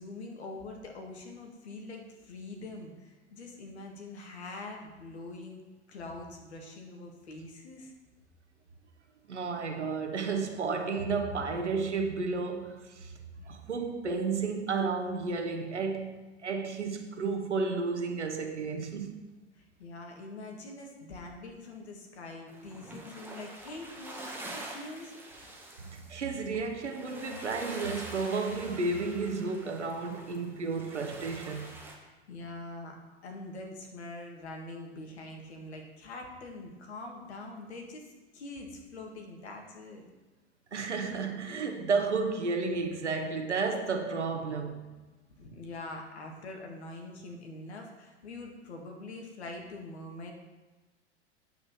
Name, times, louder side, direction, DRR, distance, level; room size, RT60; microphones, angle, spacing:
voice 1, 0.0-5.6 5.9-7.9 19.6-25.1 32.0-40.0 45.4-50.3, left 2 dB, 70° left, 2.0 m, -44 dB
voice 2, 9.3-13.2 13.4-19.2 25.8-31.8 40.7-44.9, right 4 dB, 80° right, 1.2 m, -32 dB
sound 1, 22.5-31.9, right 1 dB, 5° right, 1.7 m, -46 dB
9.4 x 5.1 x 6.3 m
figure-of-eight pair, 85°, 35 cm